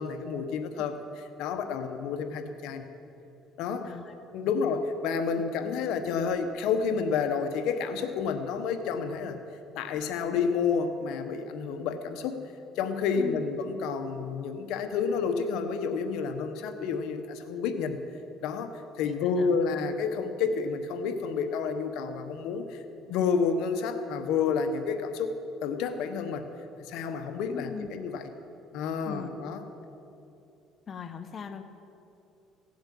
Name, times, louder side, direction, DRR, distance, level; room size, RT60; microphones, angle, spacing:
voice 1, 0.0-2.8 3.6-4.0 4.3-9.4 9.7-12.4 12.7-18.0 18.4-22.8 23.1-26.4 26.8-28.3 28.7-29.6, left 5 dB, 75° left, 8 dB, 1.1 m, -30 dB
voice 2, 3.8-4.1 5.4-5.5 13.2-13.4 19.0-19.6 27.5-27.9 29.1-29.5 30.9-31.6, left 6 dB, 40° left, 8 dB, 0.9 m, -40 dB
17.0 x 7.8 x 8.5 m, 2.8 s
cardioid pair, 110°, 0 cm